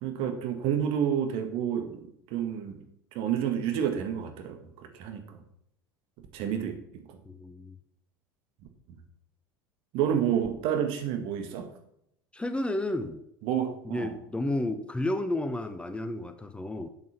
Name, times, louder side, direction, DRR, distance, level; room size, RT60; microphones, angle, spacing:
voice 1, 0.0-2.8 3.1-5.4 6.3-7.2 9.9-11.7 13.4-14.1, right 9 dB, 55° right, 6 dB, 1.7 m, -30 dB
voice 2, 7.2-7.8 12.3-13.2 13.8-16.9, left 1 dB, 10° left, 9 dB, 0.8 m, -31 dB
7.8 x 7.3 x 5.8 m, 0.74 s
figure-of-eight pair, 75°, 11 cm